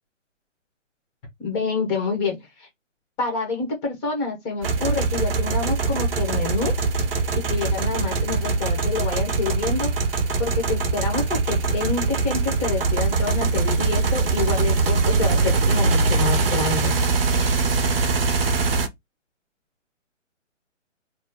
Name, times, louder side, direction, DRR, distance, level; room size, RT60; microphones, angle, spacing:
voice 1, 1.4-2.7 3.2-6.7 7.5-9.9 10.4-17.0, left 4 dB, 20° left, 1.7 m, -27 dB
sound 1, 4.6-18.9, right 3 dB, 50° right, 0.8 m, -22 dB
4.2 x 2.5 x 3.9 m
figure-of-eight pair, 135°, 38 cm